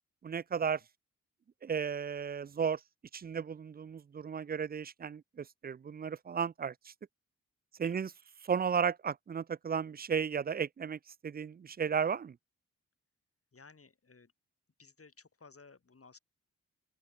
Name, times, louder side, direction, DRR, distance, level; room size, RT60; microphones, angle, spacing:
voice 1, 0.2-0.8 1.6-2.8 3.1-6.7 7.8-8.1 8.4-12.4, right 7 dB, 30° right, 0.4 m, -34 dB
voice 2, 13.5-14.3 14.8-16.2, left 4 dB, 45° left, 7.7 m, -57 dB
open air
supercardioid pair, 45°, 33 cm